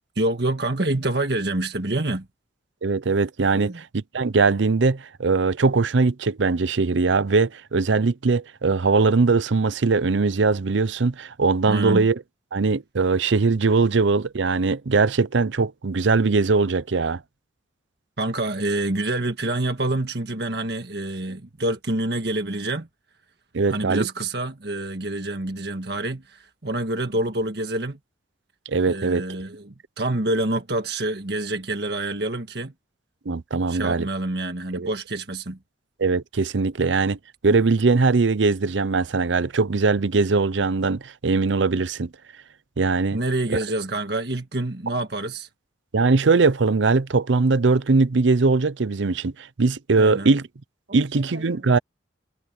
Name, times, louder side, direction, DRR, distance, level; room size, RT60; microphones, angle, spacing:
voice 1, 0.1-2.3 3.5-3.8 11.7-12.1 18.2-22.9 23.7-28.0 28.8-32.7 33.7-35.6 43.1-45.5 50.0-50.3 50.9-51.7, right 2 dB, 60° right, 1.6 m, -27 dB
voice 2, 2.8-12.2 12.5-17.2 23.5-24.1 28.7-29.2 33.3-34.1 34.7-34.9 36.0-37.2 37.4-42.1 42.8-43.2 45.9-50.5 50.9-51.8, right 4 dB, 75° right, 0.6 m, -21 dB
head